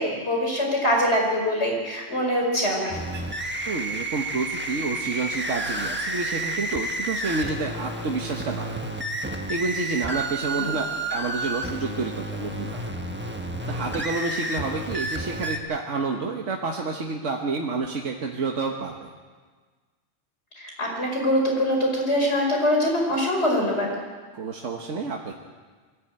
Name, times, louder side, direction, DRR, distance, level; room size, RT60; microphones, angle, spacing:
voice 1, 0.0-3.0 10.6-10.7 20.8-23.9, equal, 65° left, 0 dB, 5.4 m, -23 dB
sound 1, 2.9-15.6, right 1 dB, 10° right, 1.3 m, -31 dB
voice 2, 3.7-8.8 9.5-12.8 13.7-19.1 24.3-25.3, right 3 dB, 90° right, 1 dB, 1.7 m, -29 dB
22.5 x 14.5 x 8.9 m, 1.5 s
omnidirectional pair, 1.2 m